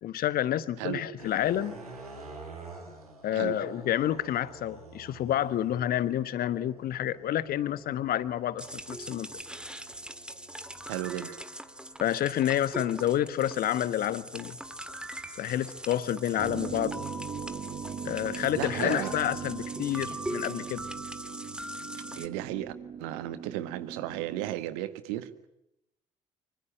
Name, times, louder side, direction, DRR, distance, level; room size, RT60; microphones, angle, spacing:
voice 1, 0.0-1.7 3.2-9.3 12.0-14.6 15.4-17.0 18.0-20.8, left 12 dB, 55° left, 1.4 m, -29 dB
sound 1, 1.2-17.5 18.1-20.6, right 3 dB, 85° right, 3.7 m, -51 dB
sound 2, 8.6-22.3, right 1 dB, 5° right, 1.8 m, -41 dB
voice 2, 10.9-11.4 18.6-19.1 22.1-22.7 23.0-25.3, right 14 dB, 70° right, 1.6 m, -34 dB
sound 3, 16.4-24.6, right 7 dB, 45° right, 1.5 m, -40 dB
25.5 x 24.5 x 8.8 m
figure-of-eight pair, 45°, 19 cm